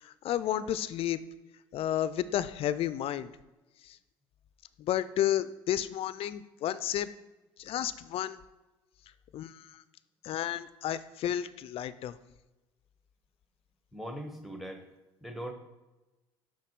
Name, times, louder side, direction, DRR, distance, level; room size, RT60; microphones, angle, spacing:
voice 1, 0.0-1.2 1.7-3.3 3.8-4.0 4.8-7.1 7.6-8.4 9.3-9.8 10.2-12.2, left 11 dB, 50° left, 15 dB, 0.4 m, -32 dB
voice 2, 13.9-14.9 15.2-15.5, equal, ahead, 6 dB, 0.9 m, -40 dB
5.9 x 4.4 x 4.6 m, 1.1 s
supercardioid pair, 80°, 12 cm